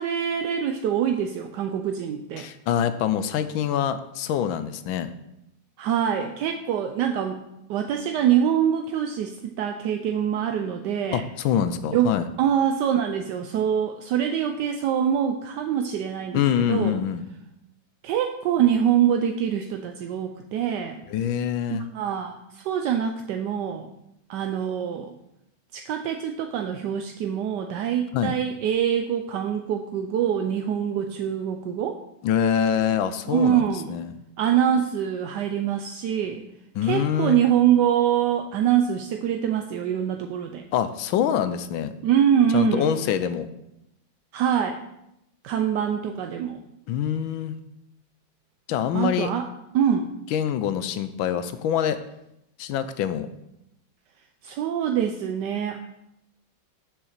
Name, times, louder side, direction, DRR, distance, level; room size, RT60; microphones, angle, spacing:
voice 1, 0.0-2.5 5.8-7.4 7.7-11.2 11.9-17.0 18.0-21.0 21.7-23.9 24.3-25.1 25.7-32.0 33.3-33.9 34.4-36.4 36.8-40.6 42.0-42.9 44.3-44.8 45.4-46.6 48.9-49.5 49.7-50.1 54.4-55.8, right 9 dB, 75° right, 5 dB, 1.0 m, -24 dB
voice 2, 2.4-5.1 11.1-12.3 16.3-17.2 21.1-21.8 28.1-28.4 32.2-34.1 36.7-37.4 40.7-41.9 42.5-43.5 46.9-47.6 48.7-49.3 50.3-52.0 52.6-53.3, left 9 dB, 75° left, 11 dB, 1.3 m, -25 dB
7.0 x 5.7 x 6.5 m, 0.84 s
omnidirectional pair, 2.3 m